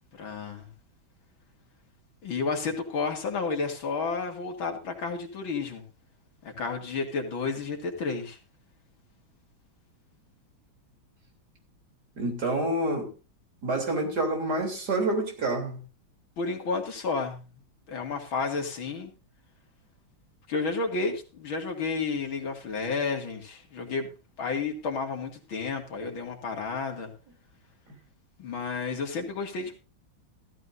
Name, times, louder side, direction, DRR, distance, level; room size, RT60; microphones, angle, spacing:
voice 1, 0.2-0.7 2.2-5.8 6.4-8.4 16.4-17.4 17.9-19.1 20.5-27.1 28.4-29.8, left 4 dB, 75° left, 3.0 m, -31 dB
voice 2, 12.2-13.1 13.6-15.8, right 2 dB, 50° right, 4.0 m, -28 dB
15.5 x 14.0 x 2.7 m
omnidirectional pair, 2.2 m